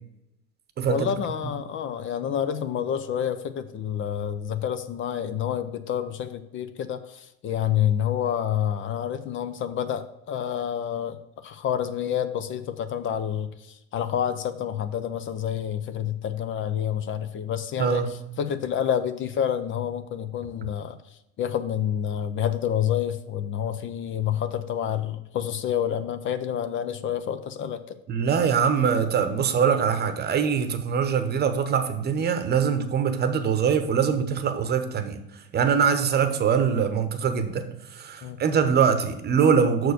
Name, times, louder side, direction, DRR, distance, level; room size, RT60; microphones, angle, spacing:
voice 1, 0.9-11.2 11.4-18.0 18.4-21.0 21.4-28.0 38.2-38.4, left 9 dB, 40° left, 0.6 m, -28 dB
voice 2, 28.1-35.2 35.5-39.9, right 7 dB, 30° right, 0.9 m, -23 dB
6.3 x 4.5 x 6.5 m
supercardioid pair, 115°, 31 cm